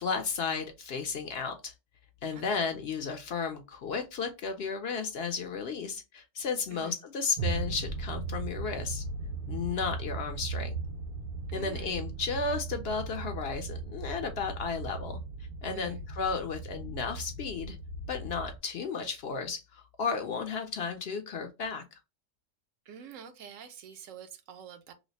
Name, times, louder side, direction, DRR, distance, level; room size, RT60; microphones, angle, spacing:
voice 1, 0.0-1.7 2.2-9.0 9.5-10.8 11.5-15.2 15.6-17.8 18.1-22.0, left 5 dB, 60° left, 0.7 m, -34 dB
voice 2, 2.3-2.7 6.7-7.0 11.5-12.0 15.7-16.0 22.9-24.9, right 8 dB, 80° right, 0.9 m, -47 dB
sound 1, 7.4-18.6, right 3 dB, 55° right, 0.6 m, -37 dB
3.1 x 2.0 x 4.0 m
omnidirectional pair, 1.4 m